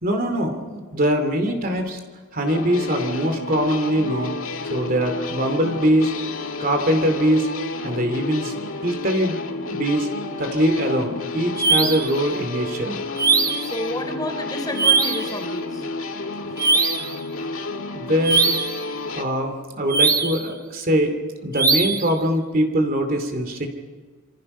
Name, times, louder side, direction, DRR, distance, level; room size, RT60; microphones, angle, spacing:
voice 1, 0.0-2.0 2.3-4.3 4.7-6.1 6.6-7.5 7.8-8.5 8.8-9.4 9.7-10.1 10.4-13.0 17.9-18.6 19.1-21.2 21.4-23.7, equal, 45° right, 6 dB, 2.7 m, -22 dB
sound 1, 2.5-19.2, left 3 dB, 75° left, 2.0 m, -31 dB
sound 2, 11.6-12.1 13.2-13.7 14.8-15.3 16.6-17.1 18.2-18.8 19.9-20.5 21.5-22.1, right 4 dB, 15° right, 1.0 m, -20 dB
voice 2, 13.6-15.9, left 1 dB, 20° left, 4 dB, 4.1 m, -30 dB
27.0 x 25.5 x 5.5 m, 1.5 s
head